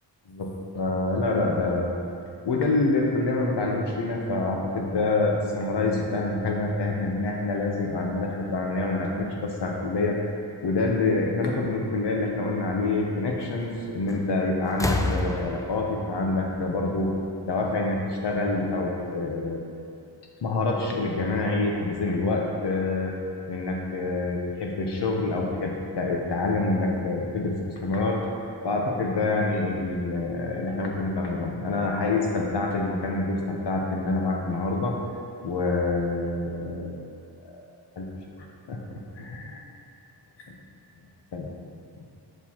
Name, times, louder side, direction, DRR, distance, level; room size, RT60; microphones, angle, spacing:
voice 1, 0.3-2.0 2.4-10.2 10.6-17.1 17.5-19.6 20.4-23.2 23.5-28.3 28.6-35.0 35.4-36.9 37.4-37.6 38.0-38.1 38.7-38.8 39.2-39.6 40.5-40.6 41.3-41.5, left 3 dB, 75° left, 0 dB, 0.9 m, -26 dB
sound 1, 14.1-14.4 14.7-17.4 18.6-18.7, left 1 dB, 10° left, 0.3 m, -30 dB
9.2 x 4.6 x 2.9 m, 2.5 s
cardioid pair, 60°, 42 cm